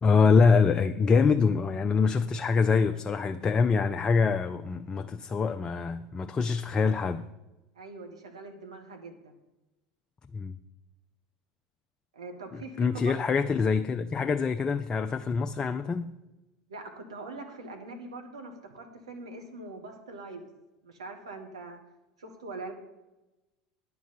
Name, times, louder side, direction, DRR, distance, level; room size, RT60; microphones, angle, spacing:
voice 1, 0.0-7.3 10.3-10.6 12.8-16.1, left 5 dB, 25° left, 0.5 m, -25 dB
voice 2, 7.7-9.4 12.1-13.1 16.7-20.5 20.8-21.8 22.2-22.7, right 3 dB, 80° right, 1.6 m, -42 dB
10.5 x 4.8 x 7.9 m
hypercardioid pair, 80°, 3 cm